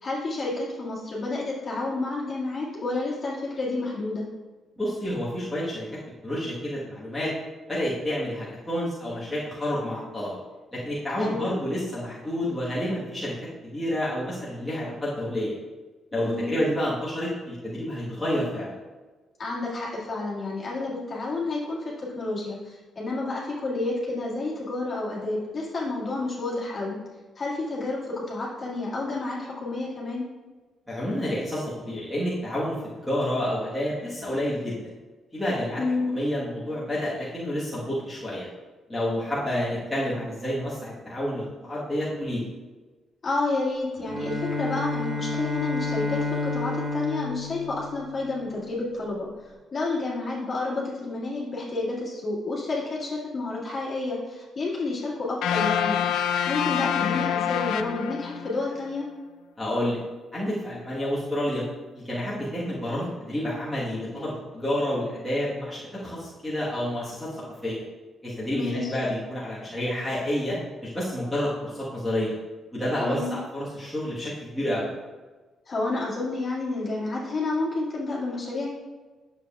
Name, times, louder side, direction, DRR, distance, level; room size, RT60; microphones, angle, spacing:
voice 1, 0.0-4.3 11.2-11.5 16.2-16.6 19.4-27.0 27.4-30.2 35.8-36.2 43.2-49.3 49.7-56.0 56.5-59.1 68.5-68.9 73.0-73.4 75.7-78.7, left 2 dB, 30° left, -6 dB, 2.0 m, -30 dB
voice 2, 4.8-5.9 6.2-7.3 7.7-10.4 10.7-13.3 13.6-15.5 16.1-18.7 30.9-34.9 35.3-35.8 36.1-38.5 38.9-42.5 59.6-60.0 60.3-61.6 61.9-67.3 67.6-67.8 68.2-70.6 70.8-72.3 72.7-74.9, left 1 dB, 5° left, -9 dB, 1.3 m, -29 dB
Bowed string instrument, 44.0-48.6, left 3 dB, 25° right, 1.5 m, -30 dB
sound 1, 55.4-58.7, left 9 dB, 90° left, 0.4 m, -26 dB
9.2 x 7.0 x 2.3 m, 1.3 s
cardioid pair, 170°, 0 cm